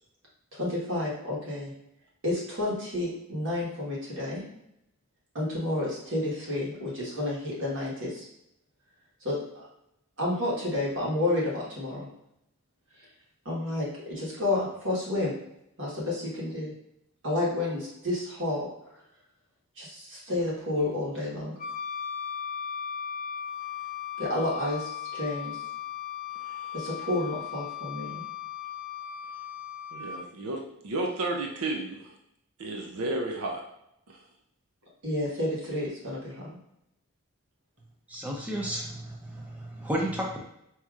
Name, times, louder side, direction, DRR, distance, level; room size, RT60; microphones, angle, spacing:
voice 1, 0.5-1.7 2.2-4.4 5.3-8.2 9.2-9.7 10.2-12.1 13.4-15.3 15.8-16.7 17.2-18.7 19.8-21.5 24.2-25.6 26.7-28.2 35.0-36.5, left 1 dB, 60° right, -5 dB, 1.5 m, -30 dB
Wind instrument woodwind instrument, 21.6-30.2, left 8 dB, 35° left, 0.4 m, -37 dB
voice 2, 29.9-32.1 32.6-33.6 34.1-34.2, right 2 dB, 90° right, 1 dB, 0.6 m, -32 dB
voice 3, 38.1-40.4, equal, 5° right, -2 dB, 0.6 m, -32 dB
4.7 x 2.9 x 2.4 m, 0.80 s
head